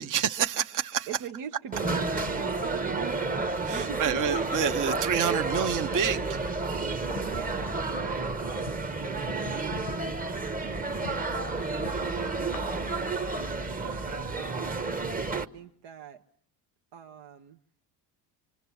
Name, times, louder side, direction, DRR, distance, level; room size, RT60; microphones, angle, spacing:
voice 1, 0.0-1.1 3.7-6.4, right 8 dB, 45° right, 1.2 m, -28 dB
voice 2, 1.1-4.2 7.2-12.9 13.8-15.0 15.3-16.2 16.9-17.6, right 9 dB, 70° right, 1.2 m, -43 dB
sound 1, 1.7-15.5, right 3 dB, 20° right, 1.1 m, -31 dB
sound 2, 1.8-14.3, left 10 dB, 90° left, 1.2 m, -46 dB
25.0 x 25.0 x 7.1 m
cardioid pair, 95°, 43 cm